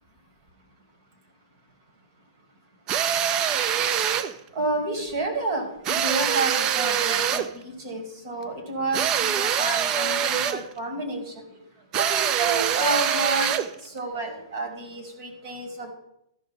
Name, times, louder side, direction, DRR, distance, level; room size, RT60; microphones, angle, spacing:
sound 1, 2.9-4.3 5.8-7.5 8.9-10.7 11.9-13.7, right 9 dB, 25° right, 0.4 m, -24 dB
voice 1, 4.5-11.4 11.9-13.5 13.8-15.9, right 3 dB, 45° right, 3 dB, 2.6 m, -30 dB
14.5 x 5.4 x 3.7 m, 0.79 s
hypercardioid pair, 155°, 2 cm